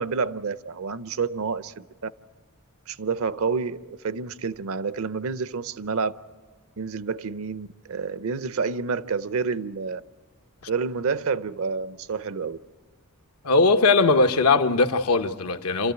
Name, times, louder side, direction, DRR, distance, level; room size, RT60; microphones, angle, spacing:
voice 1, 0.0-2.1 2.9-6.1 6.8-10.0 10.7-12.6, right 5 dB, 65° right, 0.6 m, -29 dB
voice 2, 13.4-15.9, left 3 dB, 90° left, 1.0 m, -20 dB
27.5 x 13.5 x 9.1 m
head